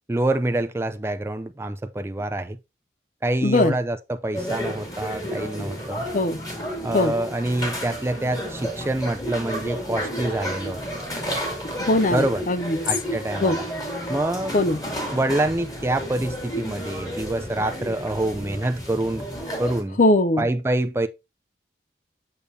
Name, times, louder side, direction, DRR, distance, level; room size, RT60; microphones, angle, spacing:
voice 1, 0.1-2.6 3.2-6.0 6.8-10.8 12.1-12.4 12.8-13.6 14.1-14.6 15.1-19.3 19.6-20.0 20.4-21.1, right 1 dB, 15° right, 0.4 m, -26 dB
voice 2, 3.4-3.7 6.1-6.4 6.9-7.1 11.8-12.8 13.4-13.6 14.5-14.8 20.0-20.5, left 2 dB, 45° left, 0.6 m, -20 dB
sound 1, 4.3-19.8, equal, 20° left, 2.4 m, -31 dB
6.9 x 6.6 x 2.7 m
head